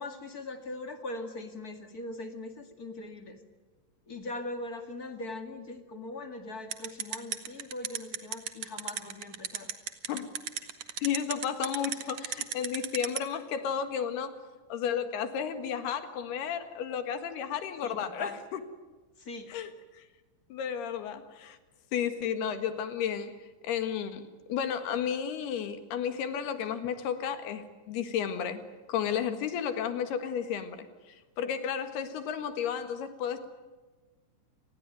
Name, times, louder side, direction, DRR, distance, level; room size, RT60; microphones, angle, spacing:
voice 1, 0.0-3.4 4.1-9.7 17.8-18.4 19.2-19.5, left 2 dB, 35° left, 6 dB, 1.5 m, -40 dB
sound 1, 6.7-13.2, right 10 dB, 55° right, 2.1 m, -33 dB
voice 2, 11.0-14.4 14.7-18.6 19.5-20.0 20.5-21.6 21.9-23.4 23.6-28.6 28.9-33.5, left 8 dB, 70° left, 9 dB, 3.5 m, -33 dB
29.5 x 20.0 x 9.3 m, 1.3 s
omnidirectional pair, 4.9 m